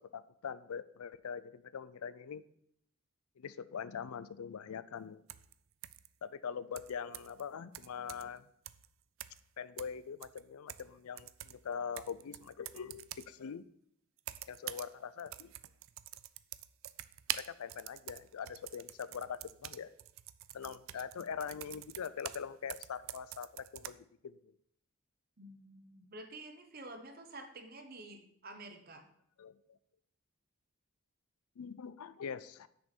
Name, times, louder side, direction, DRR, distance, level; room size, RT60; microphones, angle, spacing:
voice 1, 0.0-2.4 3.4-5.2 6.2-8.5 9.6-13.7 14.5-15.5 17.3-19.9 20.5-24.5 29.4-29.8 31.6-32.7, left 7 dB, 85° left, 15 dB, 0.4 m, -43 dB
sound 1, 5.3-5.5 5.8-6.1 6.8-7.4 7.7-8.4 8.7-8.9 9.2-9.5 9.8-10.9 11.2-13.3 14.2-14.9 15.2-22.4 22.7-23.9, right 14 dB, 65° right, 0.3 m, -46 dB
voice 2, 25.4-29.1, right 2 dB, 45° right, 6 dB, 1.0 m, -50 dB
6.5 x 5.4 x 6.0 m, 0.69 s
head